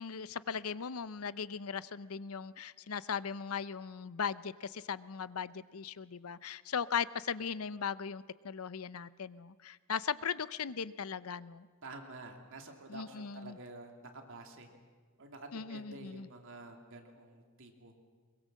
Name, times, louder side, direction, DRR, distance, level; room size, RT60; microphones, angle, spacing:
voice 1, 0.0-11.7 12.9-13.6 15.5-16.3, left 6 dB, 80° left, 16 dB, 0.7 m, -38 dB
voice 2, 11.8-14.7 15.2-17.9, right 2 dB, 65° right, 3 dB, 2.7 m, -49 dB
23.0 x 22.0 x 7.5 m, 1.5 s
head